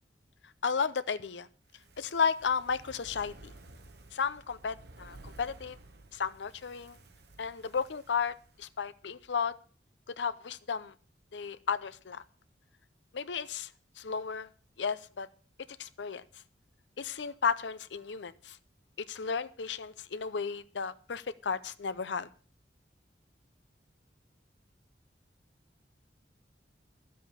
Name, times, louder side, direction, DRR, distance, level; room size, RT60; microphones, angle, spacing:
voice 1, 0.6-1.5 2.0-3.5 4.1-5.8 6.1-7.0 7.4-9.6 10.2-10.9 11.3-12.2 13.1-13.7 14.0-14.5 14.8-15.3 15.8-16.2 17.0-18.6 19.0-22.3, left 6 dB, 85° left, 14 dB, 0.6 m, -33 dB
Fire, 1.6-9.0 9.3-9.4, right 2 dB, 65° right, 1.3 m, -54 dB
12.0 x 7.7 x 6.8 m, 0.43 s
head